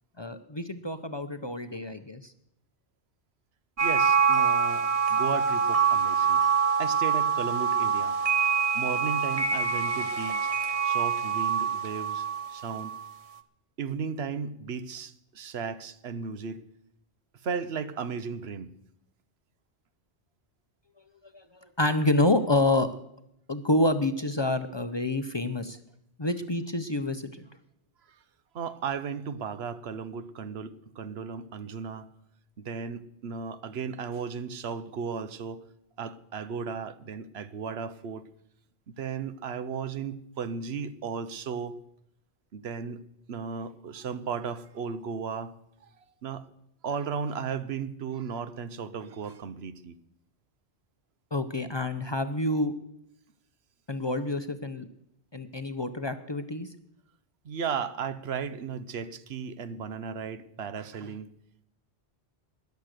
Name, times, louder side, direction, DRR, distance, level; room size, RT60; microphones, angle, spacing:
voice 1, 0.2-2.3 21.3-22.9 23.5-25.8 26.2-27.4 51.3-52.7 53.9-54.9 55.3-56.7, left 2 dB, 30° left, 0.6 m, -28 dB
sound 1, 3.8-13.1, right 6 dB, 35° right, 0.7 m, -25 dB
voice 2, 3.8-6.4 6.8-8.2 8.7-10.5 10.8-12.9 13.8-16.6 17.4-18.7 28.1-28.2 28.5-32.1 32.6-35.6 36.0-38.2 38.9-41.8 42.5-45.5 45.8-45.9 46.2-46.5 46.8-50.0 57.4-61.3, right 6 dB, 70° right, 1.1 m, -35 dB
13.5 x 11.0 x 6.6 m
omnidirectional pair, 1.1 m